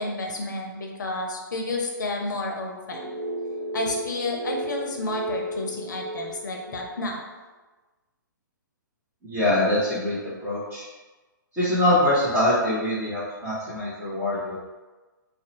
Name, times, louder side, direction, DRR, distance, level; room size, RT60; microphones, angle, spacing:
voice 1, 0.0-3.1 3.7-7.3, left 2 dB, 65° left, 1 dB, 0.5 m, -31 dB
sound 1, 2.9-7.1, right 1 dB, 75° right, 0.5 m, -34 dB
voice 2, 9.2-10.8 11.5-14.6, left 1 dB, 15° right, -11 dB, 0.7 m, -24 dB
2.6 x 2.0 x 2.8 m, 1.2 s
figure-of-eight pair, 120°, 11 cm